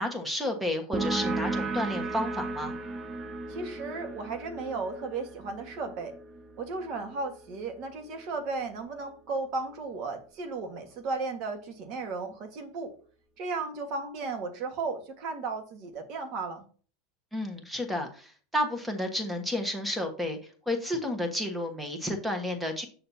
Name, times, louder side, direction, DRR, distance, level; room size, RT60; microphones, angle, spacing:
voice 1, 0.0-2.7 17.3-20.4 20.7-22.9, left 1 dB, 5° right, 5 dB, 1.5 m, -31 dB
sound 1, 0.9-8.2, right 3 dB, 25° right, 0.7 m, -35 dB
voice 2, 3.5-6.2 6.6-12.9 13.4-16.6, right 3 dB, 50° right, 6 dB, 1.7 m, -35 dB
7.5 x 6.6 x 2.8 m, 0.41 s
supercardioid pair, 130°, 0 cm